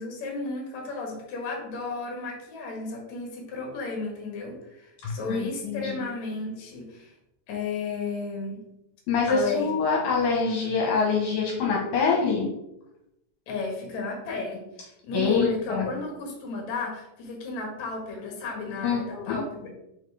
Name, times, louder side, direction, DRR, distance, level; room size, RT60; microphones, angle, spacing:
voice 1, 0.0-7.1 7.5-8.6 9.3-10.1 13.5-19.7, left 3 dB, 60° left, 0 dB, 2.6 m, -33 dB
voice 2, 5.0-6.1 9.1-12.5 15.1-15.9 18.8-19.4, left 5 dB, 75° left, -2 dB, 2.6 m, -25 dB
5.3 x 4.1 x 4.8 m, 0.86 s
omnidirectional pair, 4.1 m